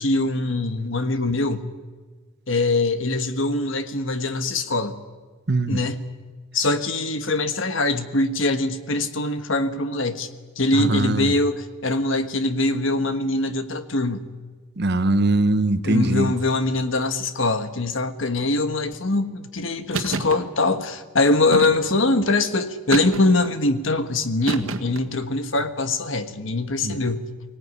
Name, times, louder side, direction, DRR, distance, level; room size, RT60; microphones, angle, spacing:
voice 1, 0.0-1.7 2.5-5.0 5.6-6.0 6.5-10.3 10.6-14.3 15.8-27.3, left 2 dB, 65° left, 1.4 m, -23 dB
voice 2, 5.5-5.8 10.8-11.3 14.8-16.3 26.8-27.0, right 2 dB, 50° right, 0.9 m, -21 dB
sound 1, 19.9-20.4 21.5-22.1 22.9-23.5 24.5-25.1, right 3 dB, 75° right, 1.8 m, -28 dB
24.0 x 17.5 x 9.6 m
head